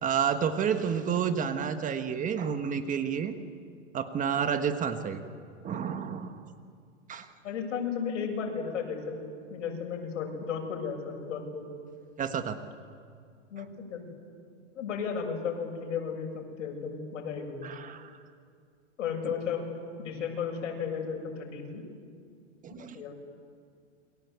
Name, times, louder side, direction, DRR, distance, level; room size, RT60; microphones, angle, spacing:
voice 1, 0.0-3.3 3.9-5.2 5.6-6.5 7.1-7.3 12.2-12.6 17.6-18.1 22.6-23.0, right 7 dB, 20° right, 8 dB, 1.4 m, -30 dB
voice 2, 7.4-11.7 13.5-14.1 14.8-17.9 19.0-19.6 20.0-21.8 22.7-23.2, left 6 dB, 75° left, 2 dB, 7.4 m, -34 dB
29.0 x 23.0 x 8.2 m, 2.2 s
hypercardioid pair, 140°, 38 cm